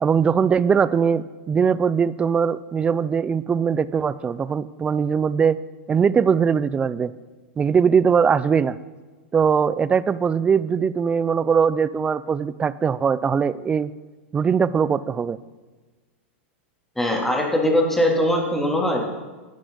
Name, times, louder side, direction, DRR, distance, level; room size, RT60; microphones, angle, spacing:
voice 1, 0.0-5.6 5.9-7.1 7.6-8.8 9.3-13.9 14.3-15.4, right 6 dB, 15° right, 17 dB, 0.4 m, -21 dB
voice 2, 17.0-19.0, left 1 dB, 5° left, -1 dB, 2.8 m, -21 dB
16.0 x 9.9 x 3.9 m, 1.3 s
hypercardioid pair, 110°, 7 cm